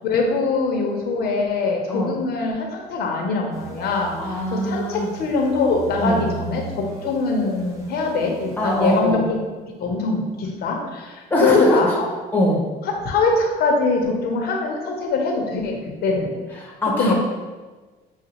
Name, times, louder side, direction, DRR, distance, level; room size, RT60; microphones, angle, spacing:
voice 1, 0.0-9.4 9.8-12.1 12.8-16.3 17.0-17.1, left 3 dB, 65° left, 1 dB, 0.9 m, -23 dB
sound 1, 3.5-9.0, right 5 dB, 15° right, 0.9 m, -38 dB
voice 2, 4.2-5.1 5.9-6.2 8.6-9.3 11.3-12.0 12.3-12.6 16.6-17.1, left 1 dB, 10° left, -3 dB, 1.1 m, -21 dB
6.5 x 2.3 x 2.9 m, 1.3 s
cardioid pair, 110°, 17 cm